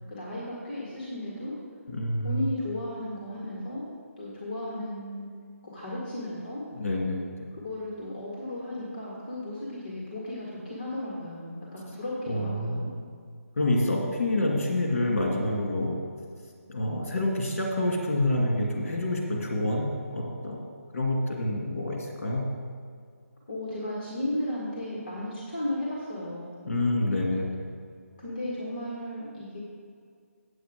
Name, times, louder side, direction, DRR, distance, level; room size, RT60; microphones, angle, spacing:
voice 1, 0.1-1.6 2.2-3.8 4.2-5.3 5.6-6.6 7.5-12.9 23.5-26.7 28.2-29.6, left 1 dB, 35° left, -6 dB, 1.8 m, -35 dB
voice 2, 1.9-2.4 6.7-7.2 12.3-12.8 13.6-15.9 16.7-20.6 20.9-22.4 26.7-27.5, left 1 dB, 55° left, -1 dB, 2.3 m, -27 dB
8.4 x 8.1 x 5.0 m, 2.1 s
hypercardioid pair, 175°, 8 cm